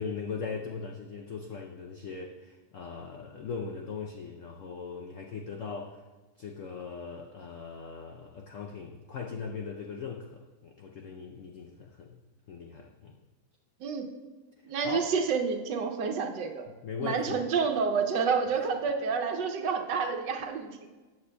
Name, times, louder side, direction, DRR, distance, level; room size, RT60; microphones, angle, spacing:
voice 1, 0.0-6.0 6.4-12.2 12.5-13.2 14.8-15.1 16.8-17.5, left 5 dB, 90° left, 2 dB, 0.6 m, -39 dB
voice 2, 14.6-16.7 17.0-20.9, right 5 dB, 70° right, 4 dB, 1.3 m, -29 dB
13.5 x 8.5 x 2.2 m, 1.3 s
omnidirectional pair, 2.1 m